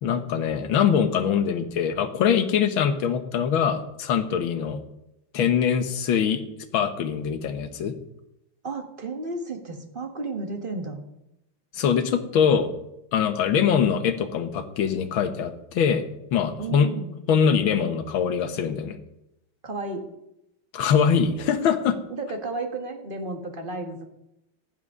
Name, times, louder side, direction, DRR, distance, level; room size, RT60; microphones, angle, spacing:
voice 1, 0.0-4.8 5.3-6.4 6.7-7.9 11.7-12.7 13.1-16.1 16.3-16.9 17.3-19.0 20.7-22.0, left 7 dB, 70° left, 9 dB, 1.8 m, -23 dB
voice 2, 8.6-11.0 16.6-17.2 19.6-20.0 22.1-24.0, right 3 dB, 25° right, 4 dB, 1.5 m, -33 dB
15.0 x 11.0 x 3.7 m, 0.85 s
omnidirectional pair, 2.3 m